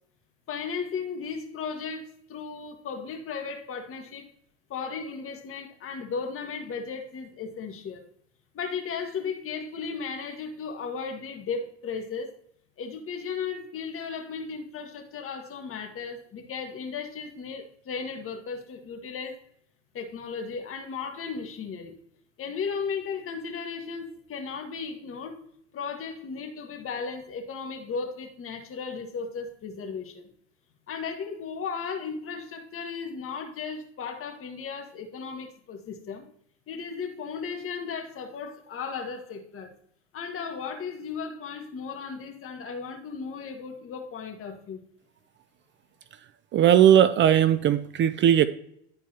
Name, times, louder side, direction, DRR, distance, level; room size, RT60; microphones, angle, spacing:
voice 1, 0.5-4.3 4.7-8.0 8.5-12.3 12.8-19.4 19.9-21.9 22.4-25.4 25.7-30.3 30.9-36.2 36.7-39.7 40.1-44.8, left 5 dB, 40° left, 4 dB, 1.7 m, -35 dB
voice 2, 46.5-48.5, right 10 dB, 35° right, 13 dB, 0.4 m, -18 dB
11.5 x 4.5 x 2.9 m, 0.68 s
hypercardioid pair, 90°, 33 cm